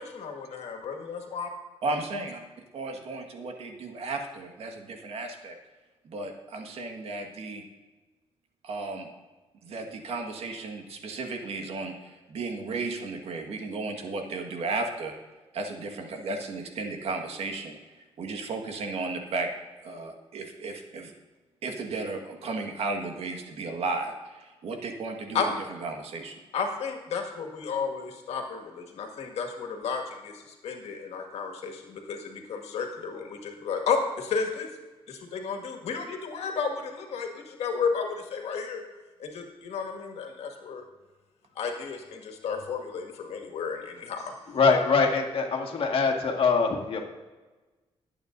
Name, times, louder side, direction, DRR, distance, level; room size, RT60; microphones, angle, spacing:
voice 1, 0.0-1.5 25.3-25.5 26.5-34.7 35.1-38.8 39.2-40.9 41.6-44.3, left 5 dB, 80° left, 3 dB, 1.9 m, -32 dB
voice 2, 1.8-2.4 2.7-5.6 6.1-7.6 8.6-9.1 9.6-15.1 15.5-17.8 18.2-19.5 19.8-21.1 21.6-25.4 25.8-26.4, right 3 dB, 70° right, 3 dB, 1.7 m, -34 dB
voice 3, 44.5-47.0, left 4 dB, 60° left, 2 dB, 1.9 m, -23 dB
19.0 x 8.7 x 2.7 m, 1.2 s
cardioid pair, 100°, 11 cm